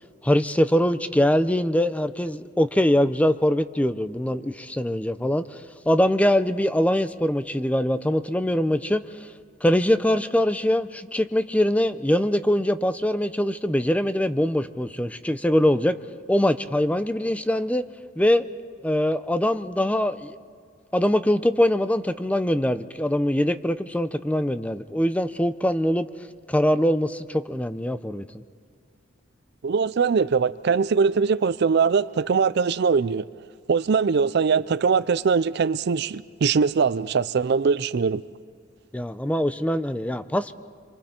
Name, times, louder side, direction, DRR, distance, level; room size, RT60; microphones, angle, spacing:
voice 1, 0.2-9.3 9.6-16.0 16.3-17.8 18.2-18.4 18.8-20.4 20.9-26.1 26.5-28.2 38.9-40.5, left 1 dB, 5° left, 0.5 m, -23 dB
voice 2, 29.6-33.3 33.7-38.2, right 5 dB, 55° right, 0.4 m, -22 dB
27.5 x 24.5 x 4.4 m
head